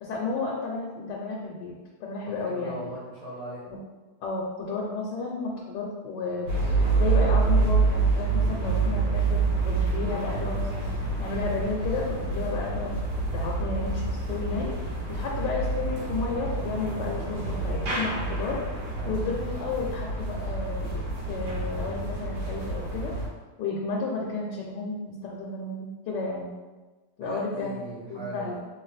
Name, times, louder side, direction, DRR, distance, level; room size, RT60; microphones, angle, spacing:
voice 1, 0.0-1.7 2.0-2.9 3.7-3.8 4.2-10.9 11.2-12.9 13.3-18.6 19.1-23.1 23.6-26.5 27.2-27.7 28.1-28.6, left 3 dB, 85° left, -2 dB, 1.3 m, -32 dB
voice 2, 2.4-3.6 19.0-19.2 27.2-28.6, right 1 dB, 60° right, -6 dB, 1.4 m, -38 dB
sound 1, 6.5-23.3, right 3 dB, 85° right, 1.5 m, -27 dB
3.2 x 3.1 x 3.2 m, 1.2 s
omnidirectional pair, 1.8 m